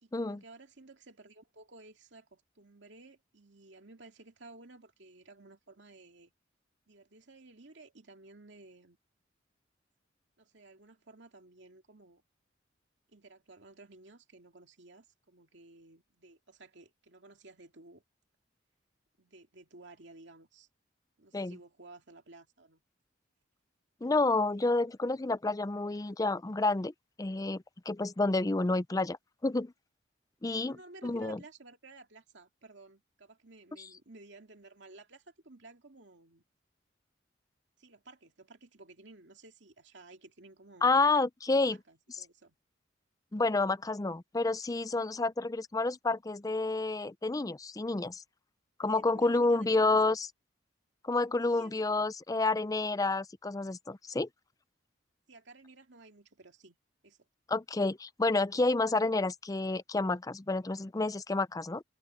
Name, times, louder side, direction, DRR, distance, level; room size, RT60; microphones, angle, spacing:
voice 1, 0.0-6.3 6.9-9.0 10.4-12.2 13.1-18.0 19.2-20.7 21.2-22.8 30.7-36.4 37.8-40.9 41.6-42.6 48.9-50.2 51.4-52.0 55.3-56.8 57.0-57.3, right 2 dB, 65° right, 2.5 m, -55 dB
voice 2, 24.0-26.9 27.2-29.2 29.4-29.7 30.4-30.8 31.0-31.4 40.8-41.8 43.3-48.2 48.8-50.3 51.0-54.3 57.5-61.8, left 3 dB, 20° left, 0.5 m, -29 dB
head